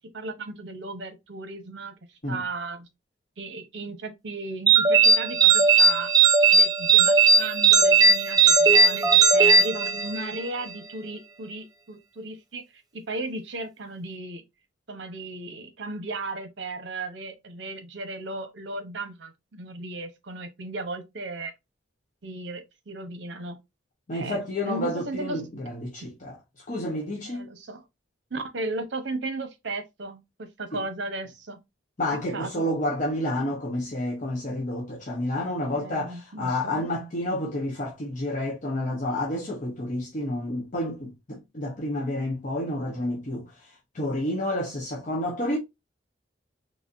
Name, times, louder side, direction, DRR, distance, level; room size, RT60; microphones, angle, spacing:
voice 1, 0.1-1.9 2.3-2.9 3.4-6.1 6.5-12.6 12.9-14.4 14.9-21.5 22.2-23.6 24.1-25.4 26.0-26.1 27.2-27.8 28.3-31.6 32.3-32.7 35.7-36.9, right 2 dB, 75° right, 0.8 m, -35 dB
sound 1, 4.7-10.4, right 5 dB, 20° right, 0.6 m, -18 dB
voice 2, 24.1-26.4 26.7-27.5 32.0-43.7 43.9-45.6, left 1 dB, 40° left, 0.9 m, -30 dB
4.0 x 3.3 x 2.5 m
head